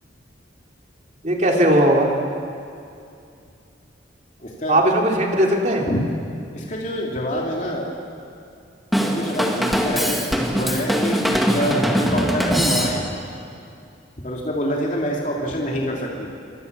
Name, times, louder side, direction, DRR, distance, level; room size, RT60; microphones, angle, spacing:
voice 1, 1.2-2.1 4.7-5.9, right 1 dB, 40° right, 0 dB, 3.4 m, -18 dB
voice 2, 4.4-4.8 5.9-6.0 6.5-7.9 8.9-13.1 14.2-16.3, equal, 40° left, -2 dB, 3.1 m, -26 dB
Drum kit / Drum, 8.9-13.3, equal, ahead, 2.0 m, -22 dB
27.0 x 25.0 x 6.9 m, 2.5 s
head